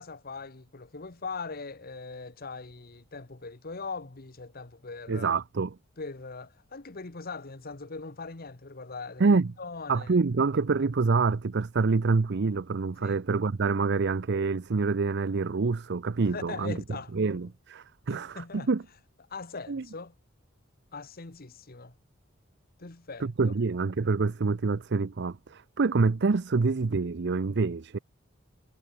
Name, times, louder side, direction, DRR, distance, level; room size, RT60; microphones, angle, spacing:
voice 1, 0.0-5.4 6.0-10.1 13.0-13.2 16.3-17.1 18.1-18.7 19.3-20.1 20.9-21.9 22.8-23.5, left 4 dB, 50° left, 1.4 m, -41 dB
voice 2, 5.1-5.8 9.2-9.5 9.9-16.8 17.1-18.8 19.7-19.8 23.2-28.0, right 4 dB, 60° right, 0.6 m, -26 dB
head